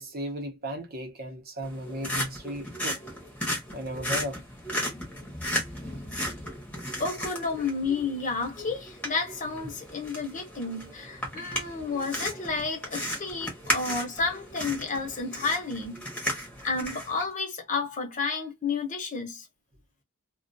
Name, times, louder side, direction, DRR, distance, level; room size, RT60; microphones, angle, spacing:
voice 1, 0.0-3.0 3.7-4.4, equal, 45° right, 0.7 m, -35 dB
sound 1, 1.6-17.2, equal, 5° left, 0.8 m, -35 dB
voice 2, 7.0-15.9 16.6-19.5, left 4 dB, 35° left, 0.7 m, -31 dB
2.3 x 2.2 x 2.5 m
head